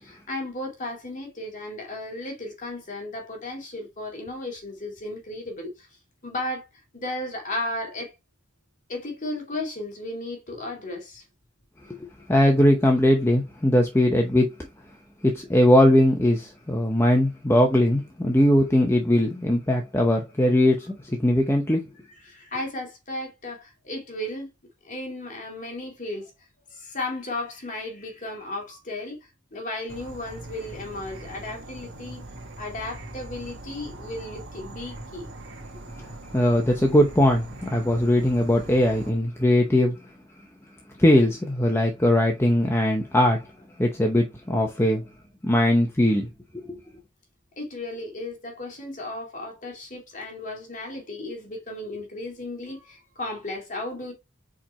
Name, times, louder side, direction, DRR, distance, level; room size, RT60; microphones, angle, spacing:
voice 1, 0.0-5.9 6.2-6.6 6.9-8.1 8.9-11.2 22.2-24.5 24.8-26.3 26.7-29.2 29.5-32.2 32.6-35.3 47.6-54.1, left 1 dB, 40° left, 2.4 m, -34 dB
voice 2, 12.0-14.5 15.2-21.8 36.3-39.9 41.0-43.4 43.8-45.0 45.4-46.3 46.5-46.8, left 1 dB, 10° left, 0.8 m, -20 dB
Insect / Frog, 29.9-39.1, right 1 dB, 60° right, 1.9 m, -41 dB
5.0 x 4.4 x 4.3 m
head